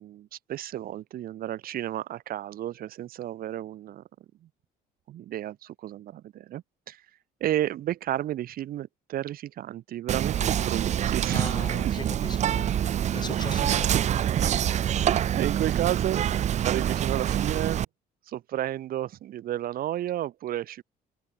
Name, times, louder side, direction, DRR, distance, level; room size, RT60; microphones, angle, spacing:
voice 1, 0.0-4.0 4.4-4.5 5.1-7.0 7.4-11.9 15.0-16.3 16.6-17.8 18.3-20.8, right 12 dB, 60° right, 1.2 m, -32 dB
Whispering, 10.1-17.8, right 10 dB, 45° right, 0.5 m, -26 dB
voice 2, 11.3-14.0, left 4 dB, 25° left, 3.7 m, -39 dB
cardioid pair, 110°, 17 cm